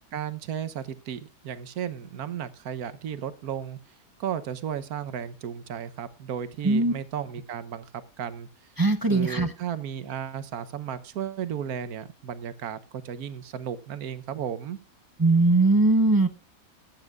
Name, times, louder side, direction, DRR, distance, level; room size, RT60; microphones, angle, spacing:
voice 1, 0.1-3.8 4.2-8.5 9.1-14.8, right 9 dB, 85° right, 13 dB, 1.4 m, -34 dB
voice 2, 8.8-9.5 15.2-16.3, right 2 dB, 30° right, 10 dB, 0.4 m, -20 dB
21.0 x 8.9 x 2.4 m, 0.30 s
omnidirectional pair, 1.5 m